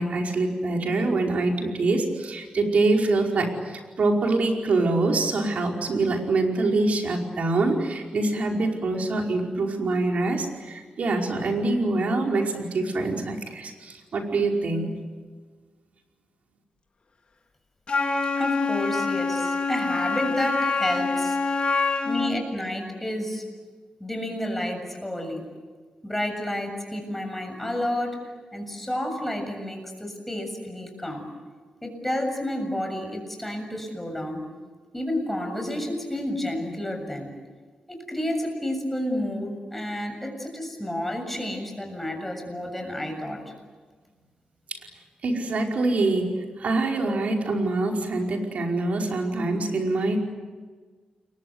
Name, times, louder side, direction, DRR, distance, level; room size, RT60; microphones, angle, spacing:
voice 1, 0.0-14.9 45.2-46.3 46.6-50.2, right 2 dB, 65° right, 1 dB, 5.1 m, -25 dB
Wind instrument woodwind instrument, 17.9-22.4, left 4 dB, 45° left, 3.2 m, -25 dB
voice 2, 18.4-21.4 22.0-23.4 24.0-25.4 26.0-28.2 28.5-31.3 31.8-34.4 34.9-37.3 37.9-43.4, left 1 dB, 5° left, 3 dB, 7.3 m, -30 dB
29.5 x 23.0 x 8.2 m, 1.5 s
wide cardioid pair, 105°, 3 cm